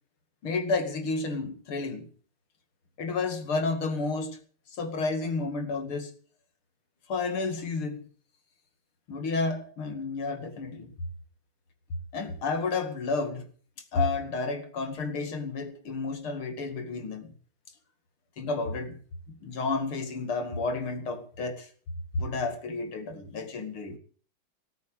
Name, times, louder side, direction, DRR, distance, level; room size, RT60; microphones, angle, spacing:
voice 1, 0.4-2.1 3.0-4.4 4.7-6.1 7.1-8.1 9.1-10.9 12.1-13.5 13.9-17.3 18.4-19.0 19.4-21.7 22.2-24.0, left 3 dB, 70° left, 3.1 m, -31 dB
19.0 x 8.3 x 8.4 m
omnidirectional pair, 2.4 m